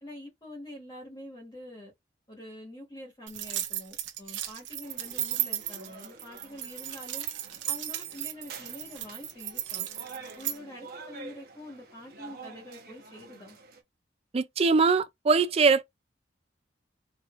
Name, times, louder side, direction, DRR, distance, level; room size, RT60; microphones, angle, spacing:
voice 1, 0.0-1.9 2.3-7.3 7.7-9.9 10.3-13.6, left 1 dB, 25° left, 1.3 m, -46 dB
sound 1, 3.3-10.6, right 12 dB, 80° right, 0.8 m, -35 dB
sound 2, 4.8-13.8, right 3 dB, 55° right, 1.0 m, -48 dB
voice 2, 14.3-15.8, right 4 dB, 35° right, 0.4 m, -22 dB
4.8 x 2.9 x 2.5 m
head